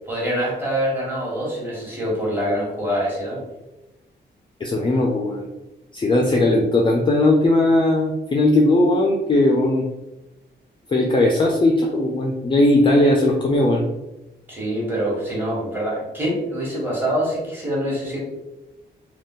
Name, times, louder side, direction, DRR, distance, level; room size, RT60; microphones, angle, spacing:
voice 1, 0.1-3.4 12.9-13.0 14.5-18.2, equal, 10° right, -6 dB, 1.2 m, -25 dB
voice 2, 4.6-5.5 5.9-9.9 10.9-13.8, left 1 dB, 25° left, 0 dB, 0.4 m, -18 dB
2.5 x 2.3 x 3.7 m, 0.98 s
wide cardioid pair, 125°, 19 cm